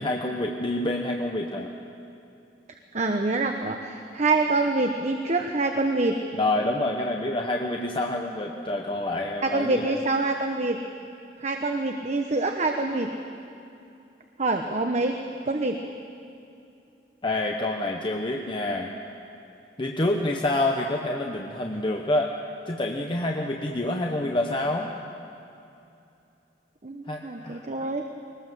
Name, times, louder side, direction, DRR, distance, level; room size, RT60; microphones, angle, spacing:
voice 1, 0.0-1.7 6.3-10.0 17.2-18.9 19.8-22.3 22.7-24.9 27.1-27.7, left 1 dB, 30° left, 1 dB, 1.0 m, -27 dB
voice 2, 2.9-6.2 9.4-10.8 11.4-13.1 14.4-15.2 15.4-15.8 26.8-28.0, right 3 dB, 40° right, 4 dB, 1.0 m, -26 dB
22.0 x 19.5 x 7.6 m, 2.7 s
head